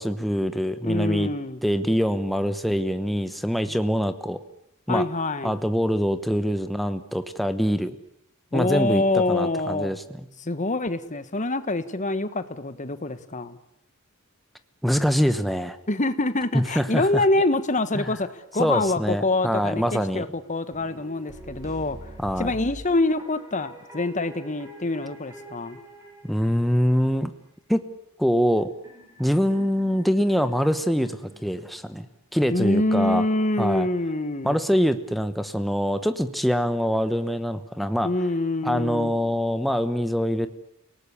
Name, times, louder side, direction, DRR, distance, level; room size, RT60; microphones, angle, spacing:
voice 1, 0.0-1.3 1.6-4.4 4.9-5.1 5.4-8.0 8.5-10.0 14.8-15.8 16.5-17.2 18.0-18.1 18.6-20.2 22.2-22.5 26.2-27.3 27.7-27.8 28.2-28.7 29.2-32.1 32.3-33.2 33.6-33.9 34.4-38.1 38.6-40.5, equal, ahead, 9 dB, 1.0 m, -24 dB
voice 2, 0.8-1.6 4.9-5.6 8.5-9.9 10.4-13.6 15.9-22.0 22.4-25.8 32.5-34.6 38.0-39.1, left 2 dB, 35° left, 12 dB, 1.4 m, -25 dB
sound 1, 20.7-27.1 28.5-32.2, equal, 15° right, 6.9 m, -45 dB
29.5 x 18.5 x 8.4 m, 0.75 s
head